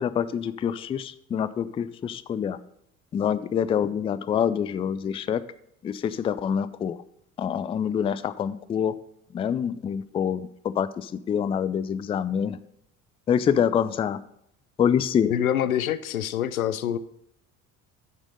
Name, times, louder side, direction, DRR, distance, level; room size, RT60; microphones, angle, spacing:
voice 1, 0.0-2.6 3.1-5.4 5.8-7.0 7.4-8.9 9.3-10.5 10.8-12.6 13.3-14.2 14.8-15.3, left 8 dB, 15° left, 15 dB, 0.3 m, -26 dB
voice 2, 15.2-17.0, left 10 dB, 80° left, 15 dB, 0.5 m, -26 dB
10.5 x 6.2 x 5.1 m, 0.74 s
figure-of-eight pair, 55°, 41 cm